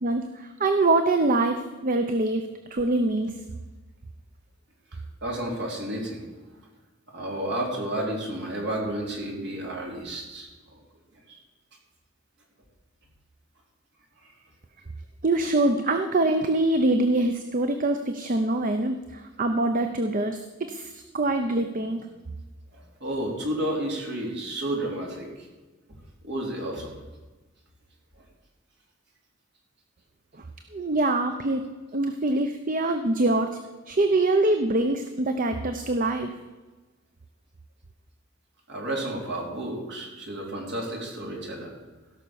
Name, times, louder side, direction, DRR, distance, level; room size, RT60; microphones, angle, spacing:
voice 1, 0.0-3.3 15.2-22.1 30.7-31.6 31.9-33.6 33.9-36.3, right 2 dB, 45° right, 7 dB, 0.7 m, -24 dB
voice 2, 4.9-6.2 7.1-10.5 11.3-11.4 14.2-14.3 22.7-25.5 26.2-27.0 38.7-41.7, right 1 dB, 60° right, -1 dB, 3.5 m, -31 dB
16.5 x 6.0 x 7.0 m, 1.2 s
head